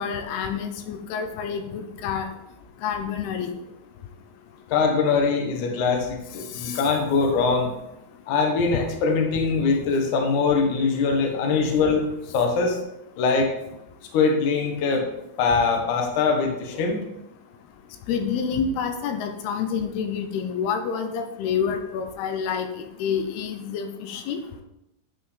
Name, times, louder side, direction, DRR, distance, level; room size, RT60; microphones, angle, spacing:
voice 1, 0.0-2.3 2.8-3.5 6.6-6.8 18.1-22.7 23.0-24.4, left 6 dB, 85° left, 6 dB, 2.7 m, -28 dB
voice 2, 4.7-7.7 8.3-12.1 12.3-12.8 13.2-13.5 14.1-15.1 15.4-17.0, left 4 dB, 65° left, 2 dB, 2.3 m, -22 dB
11.5 x 5.4 x 3.3 m, 0.85 s
omnidirectional pair, 4.5 m